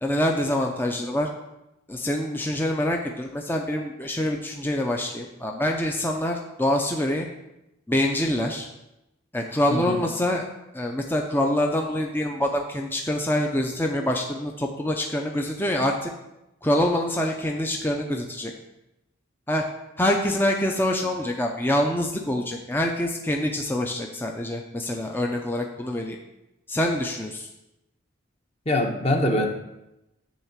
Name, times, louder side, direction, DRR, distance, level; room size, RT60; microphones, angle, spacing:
voice 1, 0.0-1.3 1.9-7.3 7.9-8.7 9.3-10.5 10.7-16.1 16.6-18.5 19.5-19.6 20.0-26.2 26.7-27.5, left 1 dB, 10° left, 1 dB, 0.6 m, -25 dB
voice 2, 9.7-10.0 28.6-29.5, left 1 dB, 30° left, 2 dB, 1.1 m, -23 dB
10.5 x 3.7 x 7.4 m, 0.91 s
head